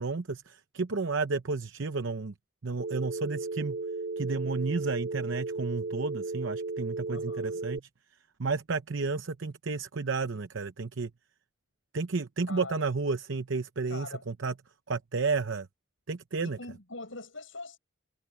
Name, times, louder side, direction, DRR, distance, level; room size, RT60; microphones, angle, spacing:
voice 1, 0.0-2.3 2.6-3.8 4.2-7.8 8.4-11.1 11.9-14.5 14.9-15.7 16.1-16.6, right 4 dB, 75° right, 0.8 m, -32 dB
Telephone, 2.8-7.8, right 3 dB, 55° right, 1.4 m, -35 dB
voice 2, 7.1-7.6 12.5-12.9 13.9-14.2 16.4-17.8, left 2 dB, 80° left, 7.5 m, -42 dB
head